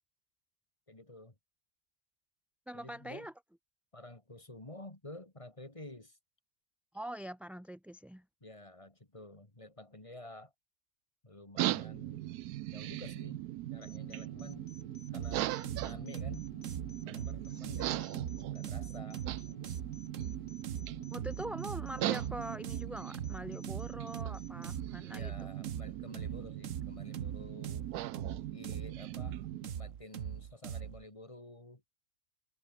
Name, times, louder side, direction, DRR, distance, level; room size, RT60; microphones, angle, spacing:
voice 1, 0.9-1.3 2.7-3.3 3.9-6.2 8.4-10.5 11.2-12.2 12.7-14.7 15.1-16.5 17.0-18.1 18.5-19.6 25.1-27.9 28.5-31.8, left 1 dB, 20° left, 2.7 m, -50 dB
voice 2, 2.7-3.3 6.9-8.2 21.1-25.5, right 1 dB, ahead, 1.1 m, -43 dB
sound 1, 11.6-29.7, right 15 dB, 85° right, 1.1 m, -39 dB
sound 2, 13.8-24.8, left 5 dB, 80° left, 2.5 m, -56 dB
sound 3, 15.1-31.0, right 9 dB, 60° right, 1.3 m, -42 dB
omnidirectional pair, 1.6 m